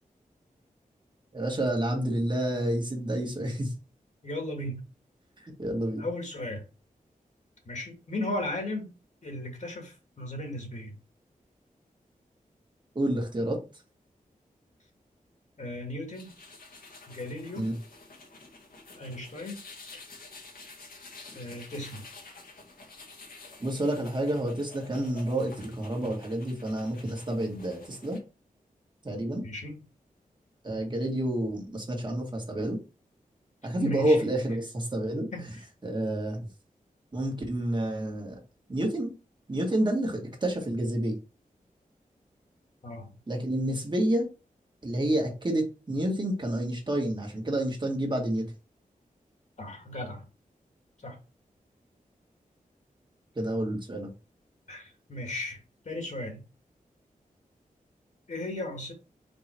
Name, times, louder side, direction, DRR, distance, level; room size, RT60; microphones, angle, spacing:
voice 1, 1.3-3.7 5.4-6.1 13.0-13.6 17.6-17.7 23.6-28.2 29.0-29.4 30.6-32.8 33.6-35.3 35.8-36.5 37.1-38.4 38.7-39.1 39.5-41.2 43.3-44.3 44.8-48.4 53.4-54.1, right 1 dB, 30° right, 2.1 m, -29 dB
voice 2, 4.2-4.8 6.0-6.6 7.7-8.9 9.2-11.0 15.6-16.3 17.0-17.7 19.0-19.6 21.3-22.0 29.4-29.8 33.8-34.3 35.3-35.6 42.8-43.1 49.6-50.2 51.0-51.2 54.7-56.4 58.3-58.9, left 1 dB, 60° left, 2.1 m, -36 dB
sound 1, 16.1-28.2, left 3 dB, 80° left, 1.9 m, -49 dB
5.4 x 3.8 x 4.6 m
wide cardioid pair, 120°, 15 cm